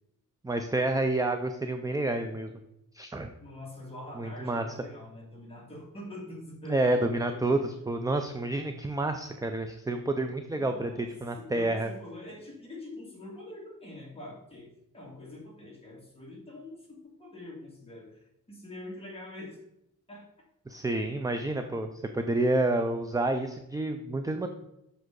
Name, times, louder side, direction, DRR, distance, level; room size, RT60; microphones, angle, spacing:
voice 1, 0.4-2.5 2.9-3.3 4.2-4.6 6.7-11.9 20.7-24.5, right 2 dB, 10° right, 6 dB, 0.4 m, -29 dB
voice 2, 3.4-7.5 10.5-11.1 11.4-14.7 14.9-19.6 20.1-20.3, left 1 dB, 15° left, -3 dB, 2.4 m, -44 dB
8.0 x 6.2 x 3.8 m, 0.85 s
wide cardioid pair, 150°, 34 cm